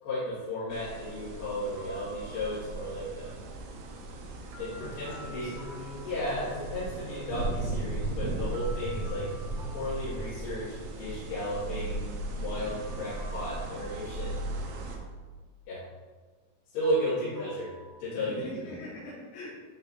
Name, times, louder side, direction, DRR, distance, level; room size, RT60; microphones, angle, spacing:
voice 1, 0.0-3.4 4.6-5.5 6.0-9.2 9.7-14.4 15.7-15.8 16.7-17.7 18.0-18.4, equal, 55° left, -13 dB, 3.1 m, -34 dB
sound 1, 0.7-15.0, right 2 dB, 90° right, 3.4 m, -37 dB
sound 2, 1.8-2.9 4.5-6.8 8.5-10.9 12.7-15.0 16.8-17.9, right 1 dB, 70° right, 4.4 m, -51 dB
voice 2, 4.8-6.5 17.1-17.6 18.2-19.6, left 2 dB, 80° left, -9 dB, 3.7 m, -43 dB
11.0 x 3.9 x 2.8 m, 1.4 s
omnidirectional pair, 5.7 m